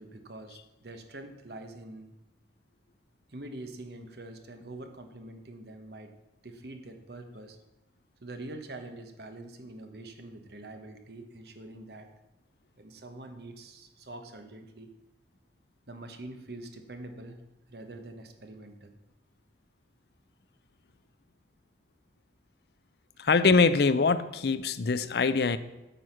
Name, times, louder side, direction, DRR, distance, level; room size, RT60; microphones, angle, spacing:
voice 1, 0.0-2.1 3.3-6.1 6.4-7.6 8.2-12.1 12.8-14.9 15.9-17.4 17.7-19.0 23.1-23.2, right 2 dB, 65° right, 6 dB, 1.1 m, -45 dB
voice 2, 23.2-25.6, left 4 dB, 65° left, 13 dB, 0.5 m, -23 dB
9.3 x 6.4 x 5.7 m, 1.0 s
head